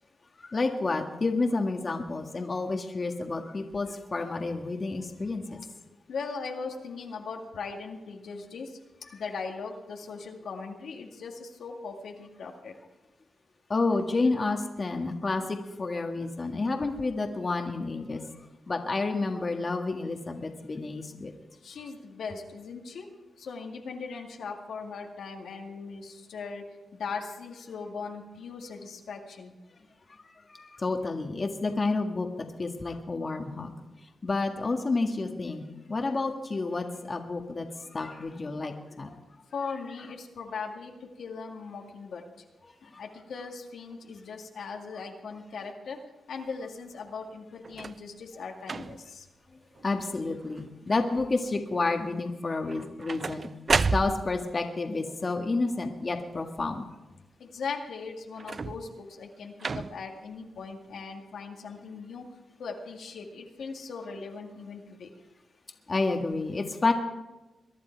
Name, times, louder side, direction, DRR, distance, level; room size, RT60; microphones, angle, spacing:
voice 1, 0.4-5.6 13.7-18.2 18.7-21.3 30.2-33.7 34.2-35.6 35.9-39.2 49.8-53.5 53.9-56.8 65.9-66.9, left 3 dB, 40° left, 3 dB, 1.7 m, -30 dB
voice 2, 6.1-8.7 9.1-12.7 21.6-23.1 23.4-26.6 27.0-29.5 39.5-40.9 41.2-42.2 42.8-46.0 46.3-49.2 57.4-62.2 62.6-65.1, left 5 dB, 80° left, 2 dB, 2.0 m, -39 dB
sound 1, 47.6-48.1 48.6-49.2 49.8-50.1 50.4-51.0 52.7-54.5 58.3-59.0 59.6-60.2 61.0-61.1, right 4 dB, 50° right, 0.4 m, -31 dB
22.5 x 11.0 x 4.6 m, 1.1 s
cardioid pair, 65°, 0 cm